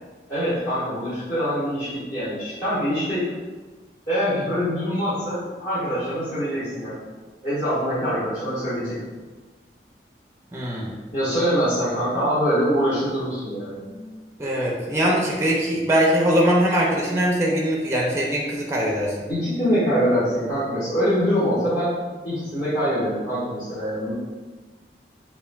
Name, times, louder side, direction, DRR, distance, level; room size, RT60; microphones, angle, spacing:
voice 1, 0.3-3.2 4.1-7.0 7.4-9.0 11.1-13.8 19.3-21.9 22.2-24.1, equal, 50° left, -13 dB, 1.4 m, -24 dB
voice 2, 10.5-10.9 13.9-14.1 14.4-19.3, equal, 15° right, -2 dB, 0.4 m, -22 dB
5.4 x 2.5 x 2.3 m, 1.3 s
head